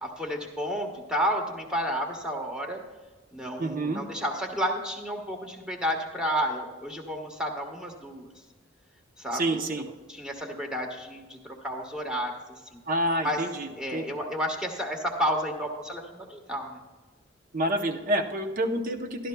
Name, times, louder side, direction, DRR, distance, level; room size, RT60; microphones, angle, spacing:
voice 1, 0.0-2.8 3.3-8.3 9.2-9.6 10.1-12.6 13.2-13.4 13.8-16.8, equal, 5° right, 1 dB, 1.2 m, -31 dB
voice 2, 3.6-4.0 9.3-9.9 12.9-14.2 17.5-19.3, right 1 dB, 45° right, 5 dB, 0.7 m, -28 dB
13.0 x 11.5 x 2.2 m, 1.3 s
head